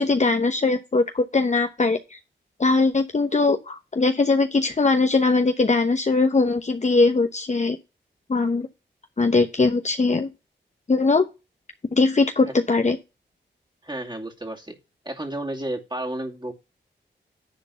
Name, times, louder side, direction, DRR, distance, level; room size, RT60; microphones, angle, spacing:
voice 1, 0.0-2.2 2.6-7.8 8.3-8.7 9.2-10.3 10.9-11.3 11.9-13.0, left 3 dB, 35° left, 6 dB, 0.9 m, -21 dB
voice 2, 13.8-14.8 15.0-16.5, right 1 dB, 25° right, 2 dB, 2.4 m, -32 dB
10.5 x 3.9 x 6.9 m, 0.28 s
supercardioid pair, 40°, 20 cm